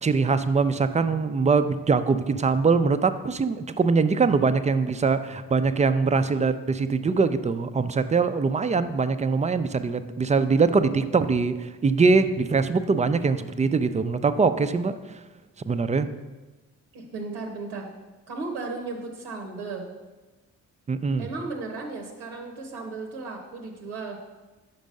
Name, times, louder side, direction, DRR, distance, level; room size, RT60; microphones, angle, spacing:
voice 1, 0.0-15.2 15.7-16.1 20.9-21.3, right 4 dB, 20° right, 11 dB, 0.4 m, -23 dB
voice 2, 16.9-17.9 18.3-19.9 21.2-24.2, right 3 dB, 90° right, 0 dB, 0.8 m, -35 dB
5.2 x 4.6 x 5.2 m, 1.2 s
supercardioid pair, 45°, 38 cm